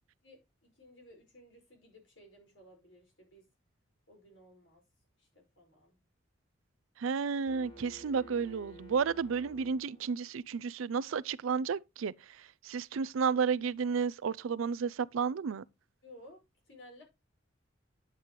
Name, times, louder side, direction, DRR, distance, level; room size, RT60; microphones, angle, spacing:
voice 1, 0.2-3.4 4.1-4.8 5.2-6.0 16.0-16.4 16.7-17.0, left 1 dB, 65° left, 5.1 m, -56 dB
voice 2, 7.0-15.6, right 6 dB, 80° right, 0.4 m, -32 dB
sound 1, 7.5-10.4, equal, 25° left, 2.8 m, -53 dB
9.8 x 8.3 x 3.1 m
head